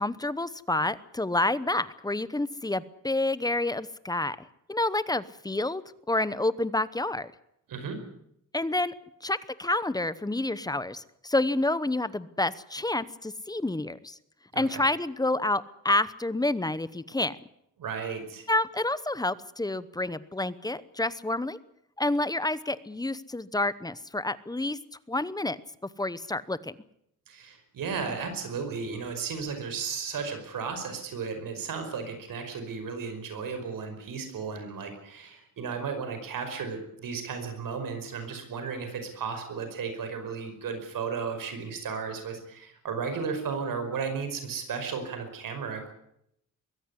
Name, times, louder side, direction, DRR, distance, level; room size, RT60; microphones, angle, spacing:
voice 1, 0.0-5.8 6.1-7.3 8.5-8.9 9.2-14.2 14.5-17.4 18.5-21.6 22.0-24.8 25.1-25.6 26.0-26.7, left 2 dB, 10° left, 16 dB, 0.9 m, -29 dB
voice 2, 14.5-14.8 17.8-18.5 27.3-45.9, right 5 dB, 80° right, 7 dB, 5.2 m, -34 dB
22.5 x 15.5 x 9.8 m, 0.75 s
wide cardioid pair, 130°, 33 cm